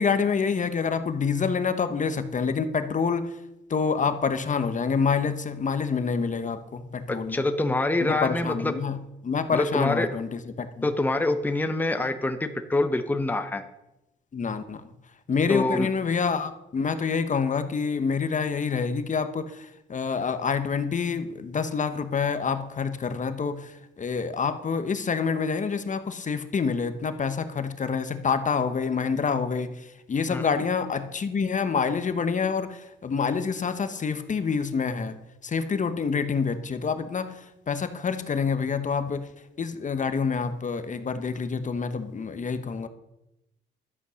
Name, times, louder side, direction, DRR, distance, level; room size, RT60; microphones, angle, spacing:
voice 1, 0.0-3.4 3.7-7.4 8.0-9.0 9.2-10.9 14.3-14.8 15.3-35.2 35.4-37.4 37.7-39.3 39.6-42.9, left 5 dB, 40° left, 10 dB, 1.1 m, -27 dB
voice 2, 7.1-8.7 9.5-10.1 10.8-13.6 15.5-15.9 30.3-30.4, left 2 dB, 10° left, 8 dB, 1.0 m, -25 dB
12.5 x 8.4 x 6.3 m, 0.90 s
cardioid pair, 90°, 20 cm